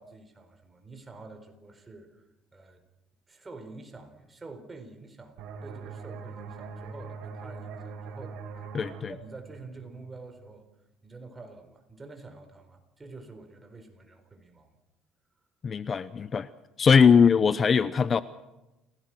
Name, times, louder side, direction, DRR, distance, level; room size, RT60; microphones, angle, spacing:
voice 1, 0.0-2.3 2.5-2.8 3.3-8.7 9.1-10.7 11.0-14.8, right 3 dB, 20° right, 6 dB, 4.4 m, -47 dB
sound 1, 5.4-10.8, right 5 dB, 75° right, 4.3 m, -43 dB
voice 2, 8.7-9.1 15.6-16.5 16.8-18.2, left 6 dB, 35° left, 14 dB, 0.7 m, -21 dB
29.5 x 17.5 x 6.3 m, 0.96 s
cardioid pair, 120°, 0 cm